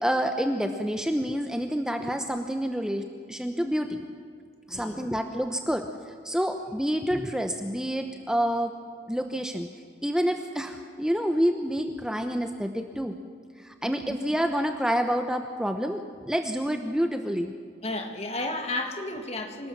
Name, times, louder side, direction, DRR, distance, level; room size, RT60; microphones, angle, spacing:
voice 1, 0.0-4.0 4.7-8.8 9.1-9.7 10.0-13.2 13.6-17.5, equal, 5° right, 6 dB, 0.9 m, -28 dB
voice 2, 4.7-5.1 13.8-14.3 17.8-19.7, left 2 dB, 35° left, 5 dB, 2.2 m, -33 dB
27.0 x 18.5 x 7.4 m, 2.1 s
head